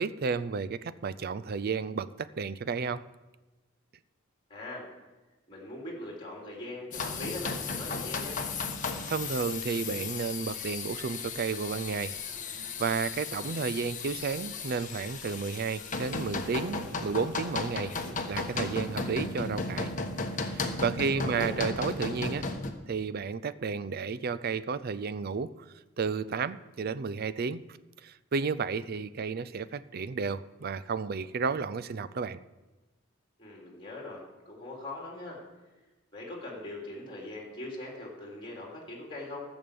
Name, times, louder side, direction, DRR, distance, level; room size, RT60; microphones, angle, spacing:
voice 1, 0.0-3.0 9.1-12.2 12.8-17.9 18.3-19.9 20.4-22.5 22.9-25.7 26.0-27.6 28.0-32.4, right 5 dB, 50° right, 16 dB, 0.4 m, -32 dB
voice 2, 4.5-4.9 5.5-8.4 21.1-21.7 33.4-35.4 36.1-39.4, left 2 dB, 25° left, -2 dB, 3.9 m, -41 dB
sound 1, 6.9-22.7, left 3 dB, 40° left, 1.2 m, -35 dB
14.5 x 7.1 x 6.9 m, 1.1 s
head